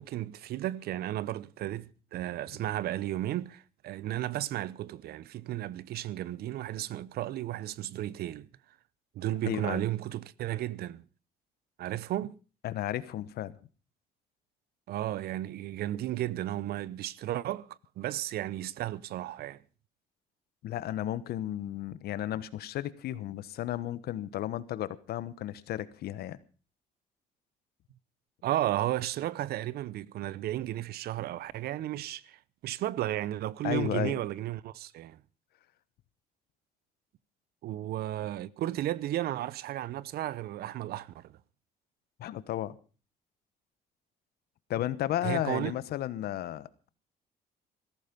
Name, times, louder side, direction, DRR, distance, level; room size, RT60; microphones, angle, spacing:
voice 1, 0.0-8.5 9.1-11.0 11.8-12.4 14.9-19.6 28.4-35.2 37.6-41.4 45.2-45.8, right 13 dB, 65° right, 0.7 m, -34 dB
voice 2, 9.5-9.8 12.6-13.5 20.6-26.4 33.6-34.2 42.2-42.8 44.7-46.9, left 12 dB, 70° left, 1.2 m, -33 dB
15.5 x 14.0 x 5.3 m
cardioid pair, 110°, 17 cm